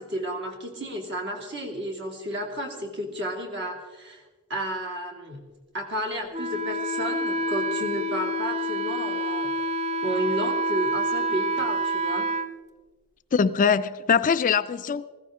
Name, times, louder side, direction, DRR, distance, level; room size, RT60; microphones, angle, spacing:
voice 1, 0.0-4.2 4.5-5.5 5.7-9.7 10.0-12.3, equal, 55° right, 2.7 m, -32 dB
Wind instrument woodwind instrument, 6.3-12.5, right 1 dB, 35° right, 0.6 m, -27 dB
voice 2, 13.3-15.1, left 6 dB, 35° left, 0.4 m, -22 dB
19.5 x 15.0 x 3.6 m
head